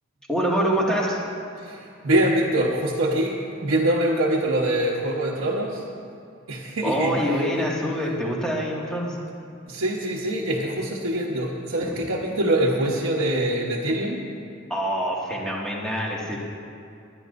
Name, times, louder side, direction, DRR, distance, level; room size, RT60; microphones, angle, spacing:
voice 1, 0.3-1.2 6.8-9.2 11.8-11.9 14.7-16.4, equal, 5° left, -5 dB, 2.1 m, -25 dB
voice 2, 1.6-5.8 6.5-7.2 9.7-14.2, right 1 dB, 85° right, -4 dB, 1.2 m, -24 dB
21.5 x 10.5 x 2.7 m, 2.6 s
head